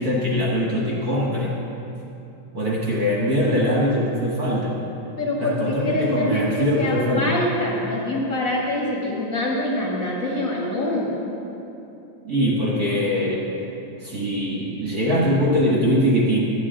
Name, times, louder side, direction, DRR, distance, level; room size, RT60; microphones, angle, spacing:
voice 1, 0.0-1.5 2.5-4.8 5.4-7.4 12.2-13.5 14.0-16.4, equal, 50° right, -4 dB, 1.2 m, -22 dB
voice 2, 5.2-11.1, left 1 dB, 40° left, -4 dB, 1.4 m, -25 dB
13.5 x 9.6 x 3.8 m, 2.9 s
omnidirectional pair, 3.3 m